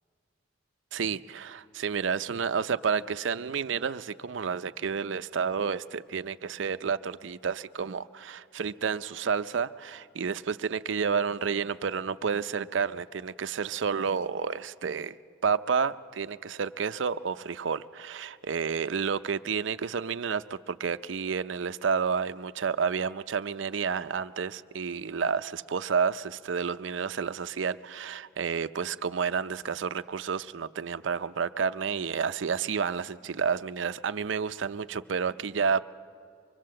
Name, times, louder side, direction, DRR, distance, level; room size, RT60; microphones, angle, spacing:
voice 1, 0.9-15.2 15.4-35.8, right 6 dB, 85° right, 13 dB, 0.5 m, -30 dB
24.5 x 22.5 x 7.6 m, 2.4 s
head